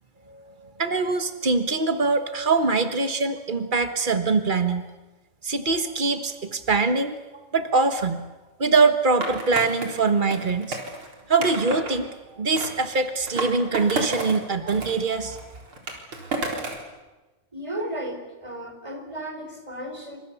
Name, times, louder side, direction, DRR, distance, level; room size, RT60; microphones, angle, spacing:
voice 1, 0.3-4.8 5.4-7.2 7.5-8.3 8.6-10.8 11.3-15.4, right 4 dB, 90° right, 8 dB, 0.4 m, -23 dB
Skateboard, 9.2-11.9 12.6-14.4 14.7-16.9, right 2 dB, 45° right, 4.8 m, -32 dB
voice 2, 17.5-20.2, right 1 dB, 10° right, 4 dB, 4.7 m, -34 dB
28.0 x 26.0 x 7.2 m, 1.2 s
omnidirectional pair, 3.3 m